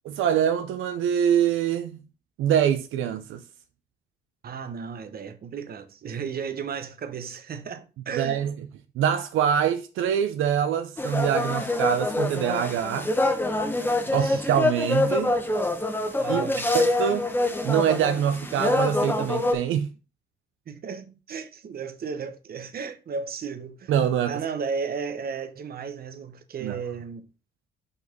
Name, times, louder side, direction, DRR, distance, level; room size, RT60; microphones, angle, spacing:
voice 1, 0.0-2.0 2.4-3.4 8.1-8.5 9.0-13.1 14.1-15.4 16.3-17.3 17.6-19.9 23.9-24.4 26.6-26.8, right 9 dB, 85° right, 0.6 m, -24 dB
voice 2, 4.4-8.4 14.0-14.5 16.2-16.7 20.7-23.9 24.3-27.3, right 6 dB, 50° right, 1.0 m, -34 dB
sound 1, 11.0-19.5, left 2 dB, 10° left, 1.1 m, -25 dB
5.6 x 4.1 x 5.2 m
cardioid pair, 90°, 20 cm